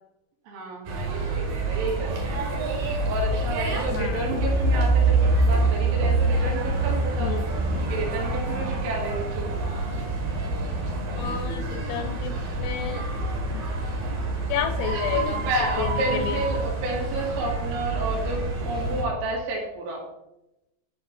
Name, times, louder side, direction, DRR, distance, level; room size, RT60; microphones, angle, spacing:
voice 1, 0.5-7.4 7.9-9.7 14.9-20.0, right 2 dB, 80° right, -2 dB, 4.7 m, -31 dB
sound 1, 0.9-19.0, right 2 dB, 60° right, 2.8 m, -26 dB
voice 2, 3.9-4.2 7.2-7.5 11.2-13.0 13.5-13.6 14.5-15.5 15.8-16.4, left 9 dB, 85° left, 7 dB, 2.9 m, -31 dB
14.0 x 5.8 x 2.6 m, 0.89 s
omnidirectional pair, 6.0 m